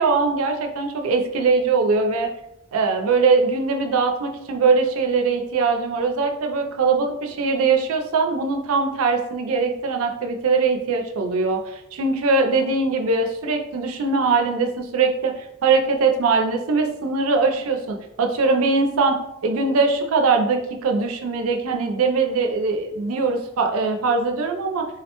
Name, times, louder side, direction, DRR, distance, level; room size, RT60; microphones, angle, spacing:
voice 1, 0.0-2.3 2.7-24.9, right 4 dB, 75° right, 4 dB, 0.4 m, -21 dB
3.8 x 2.1 x 2.8 m, 0.86 s
head